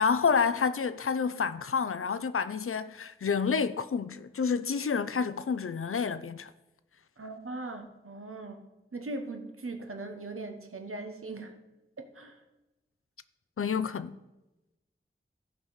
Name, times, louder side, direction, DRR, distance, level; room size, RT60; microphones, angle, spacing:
voice 1, 0.0-6.5 13.6-14.2, left 6 dB, 90° left, 0.5 m, -29 dB
voice 2, 7.2-8.6 8.9-11.6 12.0-12.4, right 2 dB, 90° right, 1.0 m, -40 dB
14.5 x 5.6 x 4.8 m
wide cardioid pair, 55°, 21 cm